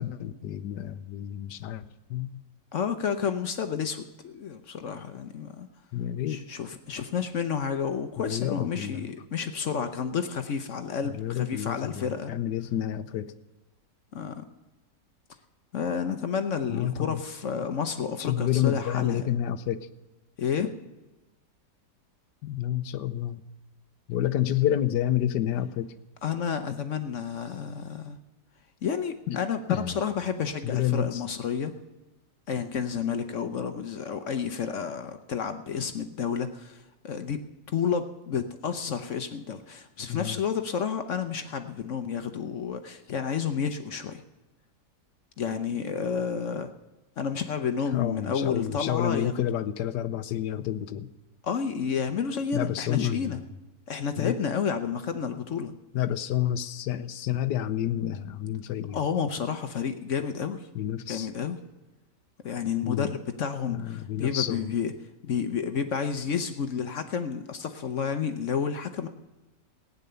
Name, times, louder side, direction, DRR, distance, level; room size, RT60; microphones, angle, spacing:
voice 1, 0.0-1.8 2.1-2.4 5.9-6.4 8.2-9.1 11.0-13.3 16.7-17.2 18.2-19.9 22.4-23.4 24.1-25.9 29.3-29.4 29.7-30.0 30.6-31.2 40.1-40.4 47.9-51.1 52.5-53.4 54.2-54.4 55.9-59.0 60.7-61.3 62.8-63.1 63.7-64.7, left 11 dB, 80° left, 13 dB, 1.3 m, -29 dB
voice 2, 2.7-5.7 6.3-12.3 14.1-14.4 15.7-19.2 20.4-20.7 26.2-28.2 28.8-31.7 32.5-36.8 37.0-37.4 37.7-44.2 45.4-46.7 47.2-49.3 51.4-53.4 53.9-55.7 58.9-60.7 61.1-61.6 62.4-64.9 65.2-69.1, left 7 dB, 55° left, 8 dB, 0.9 m, -30 dB
16.0 x 9.5 x 6.8 m, 1.1 s
omnidirectional pair, 1.9 m